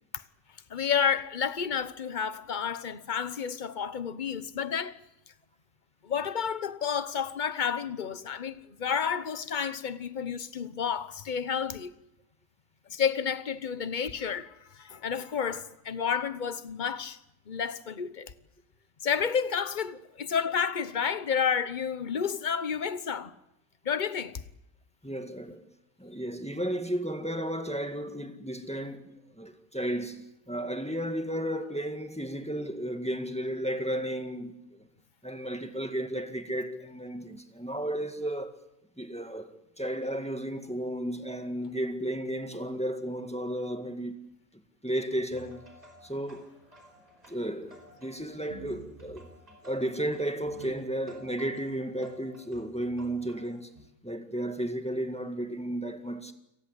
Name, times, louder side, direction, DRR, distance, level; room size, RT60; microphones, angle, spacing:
voice 1, 0.7-5.0 6.0-11.9 12.9-17.2 17.5-18.3 19.0-23.3 23.8-24.4, left 7 dB, 35° left, 1.1 m, -30 dB
voice 2, 25.0-25.7 26.0-34.8 35.2-38.5 39.0-44.2 44.8-45.6 46.0-46.5 47.3-49.3 49.6-53.7 54.0-56.3, right 1 dB, 5° left, 1.8 m, -33 dB
sound 1, 45.3-53.8, equal, 25° right, 4.9 m, -52 dB
29.5 x 18.5 x 8.2 m
omnidirectional pair, 1.5 m